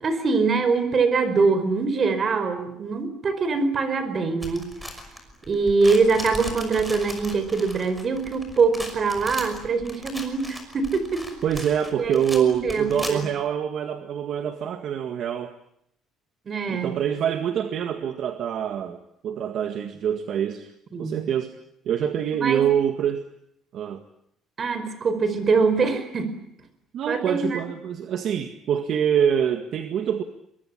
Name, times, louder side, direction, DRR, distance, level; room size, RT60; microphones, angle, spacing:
voice 1, 0.0-4.7 5.5-11.2 12.0-13.2 16.5-17.0 20.9-21.2 22.3-22.6 24.6-26.3 27.1-27.6, right 4 dB, 35° right, 11 dB, 5.0 m, -23 dB
sound 1, 4.4-13.4, equal, 5° right, 5.9 m, -38 dB
voice 2, 11.4-15.5 16.7-20.7 21.0-21.6 21.9-23.2 23.7-24.0 26.9-30.2, right 9 dB, 55° right, 8 dB, 1.9 m, -25 dB
24.0 x 22.5 x 10.0 m, 0.75 s
cardioid pair, 130°, 0 cm